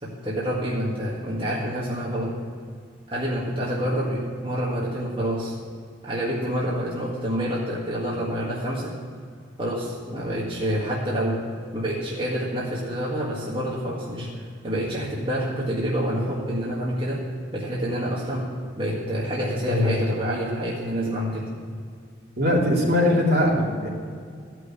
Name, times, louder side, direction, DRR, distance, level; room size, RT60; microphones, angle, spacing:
voice 1, 0.0-2.3 3.1-5.5 6.0-8.9 9.6-11.4 11.7-17.2 17.5-18.5 18.8-21.5, equal, 25° right, -6 dB, 1.7 m, -27 dB
voice 2, 22.4-23.9, left 1 dB, 55° right, -4 dB, 2.9 m, -21 dB
14.5 x 6.2 x 8.5 m, 2.2 s
head